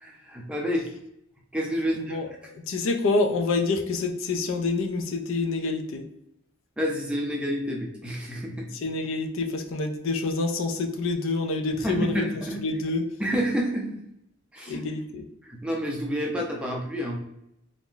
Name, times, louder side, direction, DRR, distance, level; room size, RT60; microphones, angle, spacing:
voice 1, 0.0-0.9 1.5-2.2 6.8-8.7 11.7-12.6 13.2-13.9 14.5-14.8 15.4-17.2, equal, 5° right, -1 dB, 0.4 m, -29 dB
voice 2, 2.0-2.3 2.7-6.0 8.7-12.2 12.6-13.0 14.7-15.3, left 3 dB, 75° left, 3 dB, 0.4 m, -27 dB
2.5 x 2.1 x 3.7 m, 0.81 s
head